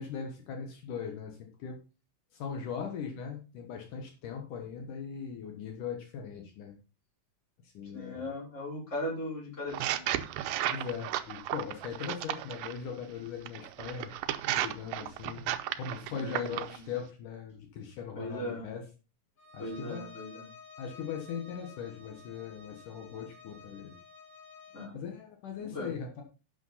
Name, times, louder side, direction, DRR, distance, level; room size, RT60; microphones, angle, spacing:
voice 1, 0.0-1.8 2.3-6.8 7.6-8.3 10.7-14.1 14.5-18.8 19.5-20.1 20.8-24.0 24.9-26.2, left 7 dB, 75° left, 3 dB, 2.9 m, -40 dB
voice 2, 7.9-10.0 16.1-16.8 18.2-18.7 19.6-20.4 24.7-24.9 25.6-25.9, left 1 dB, 20° left, -3 dB, 4.6 m, -38 dB
sound 1, 9.7-12.8 13.5-16.8, right 13 dB, 85° right, 2.3 m, -34 dB
Bowed string instrument, 19.4-25.0, left 5 dB, 45° left, 5.6 m, -52 dB
11.0 x 8.2 x 4.1 m, 0.32 s
omnidirectional pair, 3.8 m